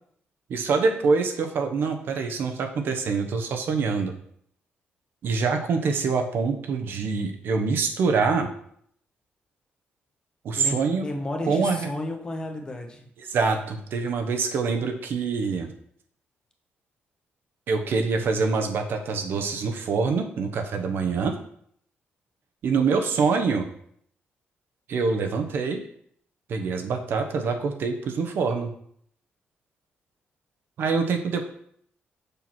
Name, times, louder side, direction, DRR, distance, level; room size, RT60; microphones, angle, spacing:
voice 1, 0.5-4.1 5.2-8.5 10.4-11.1 11.5-11.9 13.3-15.7 17.7-21.4 22.6-23.7 24.9-25.8 26.5-28.7 30.8-31.5, right 4 dB, 65° right, 5 dB, 1.0 m, -25 dB
voice 2, 10.5-13.1, left 1 dB, 20° left, 3 dB, 1.0 m, -32 dB
6.8 x 6.0 x 4.5 m, 0.65 s
wide cardioid pair, 160°, 4 cm